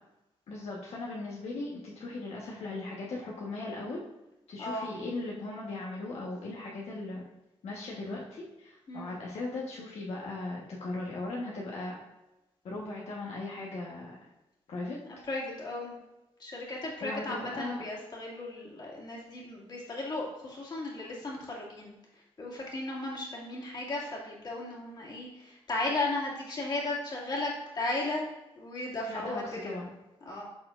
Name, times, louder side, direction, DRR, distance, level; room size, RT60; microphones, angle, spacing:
voice 1, 0.5-4.0 4.5-7.2 7.6-12.0 12.6-14.1 14.7-15.0 17.0-17.8 29.1-29.9, left 2 dB, 70° left, -4 dB, 1.3 m, -38 dB
voice 2, 4.6-4.9 8.9-9.1 15.3-15.9 16.4-21.9 22.4-28.2 28.6-29.8 30.3-30.5, left 2 dB, 40° left, -4 dB, 2.2 m, -35 dB
12.5 x 4.3 x 2.5 m, 1.0 s
wide cardioid pair, 145°, 11 cm